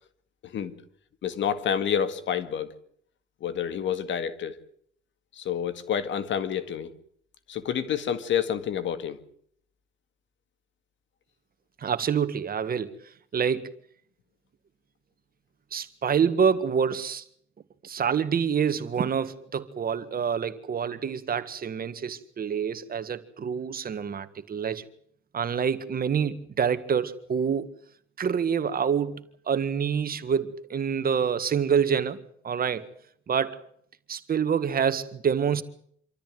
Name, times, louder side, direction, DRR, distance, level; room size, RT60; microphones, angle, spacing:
voice 1, 0.4-0.8 1.2-2.7 3.4-4.6 5.4-6.9 7.5-9.2, left 8 dB, 70° left, 2.0 m, -28 dB
voice 2, 11.8-12.9 13.3-13.7 15.7-17.2 17.8-24.9 25.3-27.7 28.2-32.9 33.3-33.6 34.1-35.6, right 7 dB, 50° right, 1.8 m, -27 dB
26.5 x 13.5 x 9.3 m
cardioid pair, 90°, 20 cm